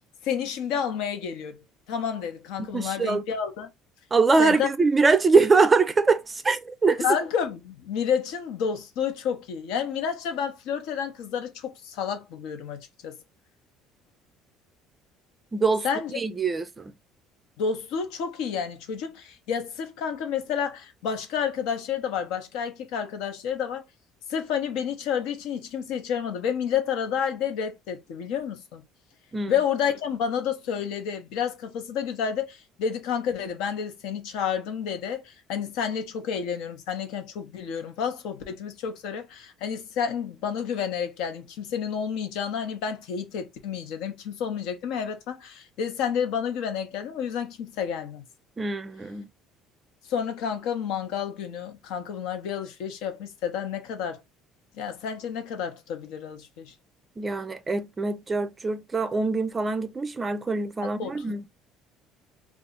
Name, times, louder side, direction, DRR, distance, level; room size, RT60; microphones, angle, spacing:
voice 1, 0.2-1.6 1.9-3.7 4.4-4.7 7.0-13.2 15.8-16.2 17.6-23.8 24.3-28.8 29.5-48.2 50.1-54.2 54.8-56.7 61.0-61.2, left 7 dB, 75° left, 0.8 m, -30 dB
voice 2, 2.6-3.2 4.1-7.1 15.5-15.9 16.1-16.9 29.3-29.5 48.6-49.3 57.2-61.4, right 4 dB, 15° right, 0.4 m, -23 dB
2.7 x 2.4 x 3.8 m
cardioid pair, 150°, 0 cm